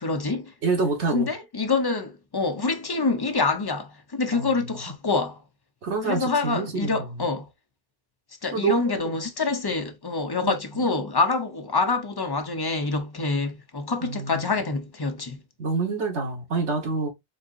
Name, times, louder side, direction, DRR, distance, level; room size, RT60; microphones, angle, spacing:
voice 1, 0.0-0.5 1.1-5.4 6.0-7.5 8.4-15.4, left 3 dB, 30° left, 0.5 m, -26 dB
voice 2, 0.6-1.3 4.3-4.5 5.8-7.3 8.5-9.1 10.4-10.5 14.0-14.4 15.6-17.1, right 4 dB, 80° right, 1.5 m, -27 dB
4.1 x 3.7 x 2.4 m
omnidirectional pair, 1.1 m